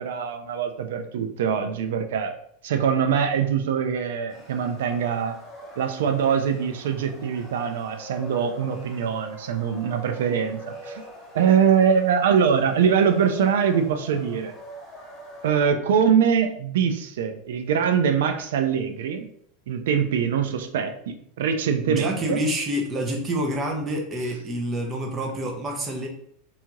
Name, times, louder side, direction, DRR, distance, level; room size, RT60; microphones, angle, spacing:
voice 1, 0.0-2.3 2.6-5.3 5.8-11.0 11.3-14.5 15.4-19.3 19.7-22.4, right 7 dB, 85° right, 7 dB, 0.3 m, -23 dB
sound 1, 4.3-15.7, equal, 15° left, 0.7 m, -43 dB
voice 2, 21.9-26.1, right 1 dB, 20° right, 1 dB, 0.5 m, -27 dB
2.7 x 2.3 x 2.9 m, 0.68 s
supercardioid pair, 155°, 0 cm